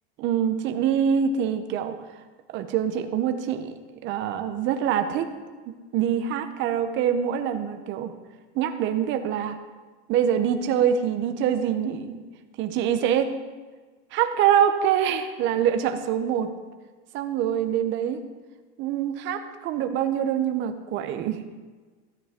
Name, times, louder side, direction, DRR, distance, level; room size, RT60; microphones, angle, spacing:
voice 1, 0.2-2.0 2.5-5.3 5.7-8.1 8.5-9.6 10.1-12.2 12.6-13.4 14.1-16.5 17.1-18.2 18.8-21.4, right 9 dB, 35° right, 8 dB, 0.7 m, -25 dB
13.0 x 9.0 x 3.6 m, 1.4 s
supercardioid pair, 150°, 34 cm